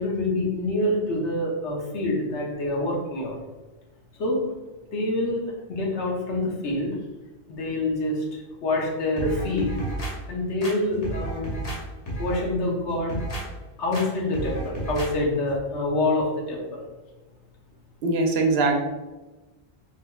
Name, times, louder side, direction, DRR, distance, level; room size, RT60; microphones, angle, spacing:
voice 1, 0.0-3.4 4.2-4.4 4.9-5.4 5.7-7.0 7.5-8.2 8.6-9.8 10.3-11.6 12.2-13.2 13.8-16.8, left 2 dB, 85° left, -1 dB, 1.2 m, -26 dB
sound 1, 9.2-10.1 10.6-11.8 12.1-12.4 12.9-13.4 13.9-14.1 14.3-15.1 15.5-15.6, right 2 dB, 40° left, 0.8 m, -32 dB
voice 2, 18.0-18.8, right 3 dB, 70° right, 3 dB, 0.8 m, -21 dB
4.8 x 3.0 x 2.3 m, 1.1 s
omnidirectional pair, 1.1 m